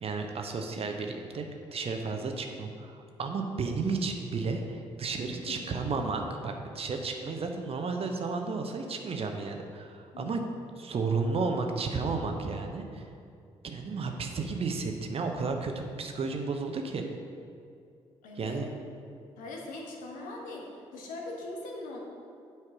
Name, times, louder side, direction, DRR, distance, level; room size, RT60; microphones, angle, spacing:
voice 1, 0.0-10.4 10.8-13.1 13.6-17.1 18.4-18.7, right 4 dB, 40° right, 4 dB, 0.8 m, -33 dB
voice 2, 5.3-5.7 10.1-10.5 18.2-18.6 19.4-22.0, left 2 dB, 65° left, 0 dB, 1.2 m, -41 dB
8.6 x 4.6 x 4.8 m, 2.4 s
figure-of-eight pair, 40°, 15 cm